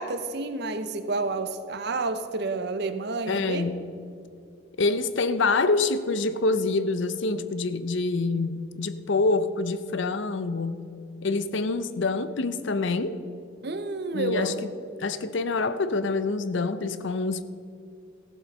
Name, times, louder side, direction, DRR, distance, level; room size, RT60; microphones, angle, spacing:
voice 1, 0.0-3.7 13.6-14.7, right 3 dB, 55° right, 10 dB, 0.8 m, -30 dB
voice 2, 3.3-3.9 4.8-10.9 11.2-13.2 14.1-14.7 15.0-17.4, left 3 dB, 60° left, 13 dB, 0.6 m, -26 dB
14.5 x 7.7 x 5.3 m, 2.5 s
head